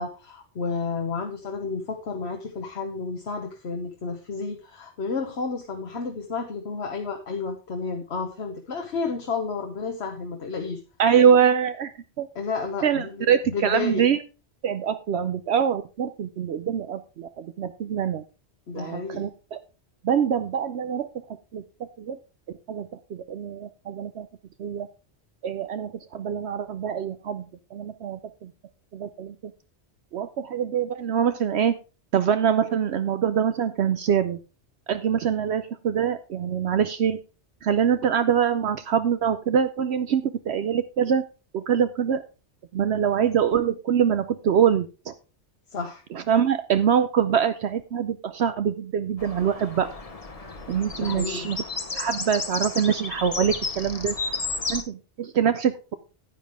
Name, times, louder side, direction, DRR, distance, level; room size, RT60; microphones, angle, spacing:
voice 1, 0.0-10.8 12.3-14.0 18.7-19.3 45.7-46.0 51.0-51.5, left 4 dB, 65° left, 3 dB, 1.4 m, -31 dB
voice 2, 11.0-12.3 12.8-14.2 14.6-18.2 18.7-19.6 20.0-21.1 21.5-21.6 22.0-22.2 22.7-24.3 24.6-24.9 25.4-27.5 27.7-28.5 28.9-29.5 30.1-31.8 32.1-34.4 34.9-37.2 37.6-41.2 41.5-42.2 42.7-45.1 46.1-49.9 50.7-51.6 51.9-54.2 54.7-55.9, right 8 dB, 70° right, 10 dB, 0.9 m, -24 dB
sound 1, 49.2-54.8, left 3 dB, 30° left, 1.1 m, -32 dB
10.0 x 9.3 x 3.5 m, 0.31 s
omnidirectional pair, 1.2 m